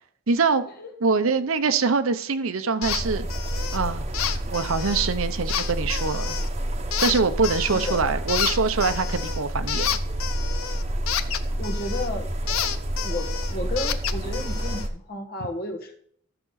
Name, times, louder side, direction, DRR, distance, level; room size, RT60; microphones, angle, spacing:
voice 1, 0.3-0.6 1.0-3.3 3.7-4.0 4.5-6.3 7.0-10.0, right 4 dB, 75° right, 10 dB, 0.8 m, -24 dB
sound 1, 2.8-3.0 3.3-3.8 4.1-5.1 5.5-6.5 6.9-8.0 8.3-12.1 12.5-14.9, left 9 dB, 75° left, 0.6 m, -30 dB
sound 2, 2.8-14.9, right 1 dB, 30° right, 1.0 m, -29 dB
voice 2, 7.7-8.1 11.6-12.3 13.0-16.0, left 2 dB, 50° left, 4 dB, 1.5 m, -33 dB
13.0 x 6.9 x 4.0 m, 0.62 s
head